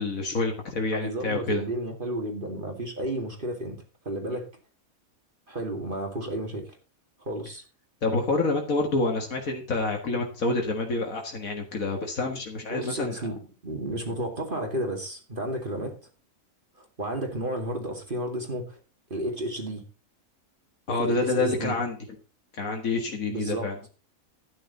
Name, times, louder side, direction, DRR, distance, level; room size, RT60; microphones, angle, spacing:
voice 1, 0.0-1.6 8.0-13.2 20.9-22.0 22.5-23.8, left 3 dB, 80° left, 2 dB, 2.2 m, -27 dB
voice 2, 0.9-4.5 5.5-6.7 7.2-7.6 12.7-15.9 16.8-18.8 19.1-19.8 21.0-21.8 23.3-23.7, right 1 dB, 40° right, 2 dB, 2.5 m, -32 dB
12.5 x 9.3 x 4.1 m, 0.34 s
omnidirectional pair, 1.4 m